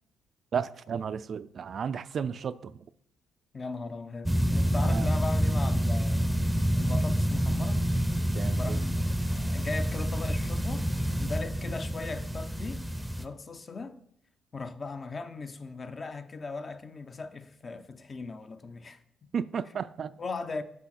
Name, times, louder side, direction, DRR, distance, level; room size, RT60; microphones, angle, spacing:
voice 1, 0.5-2.7 4.9-5.1 8.3-8.8 19.3-20.1, right 7 dB, 55° right, 0.3 m, -33 dB
voice 2, 3.5-6.3 6.8-7.9 8.5-10.9 11.2-12.9 13.2-14.0 14.5-19.3 20.2-20.6, left 3 dB, 35° left, 0.7 m, -38 dB
sound 1, 4.3-13.3, equal, 5° right, 0.6 m, -27 dB
8.2 x 6.1 x 4.2 m
cardioid pair, 90°, 0 cm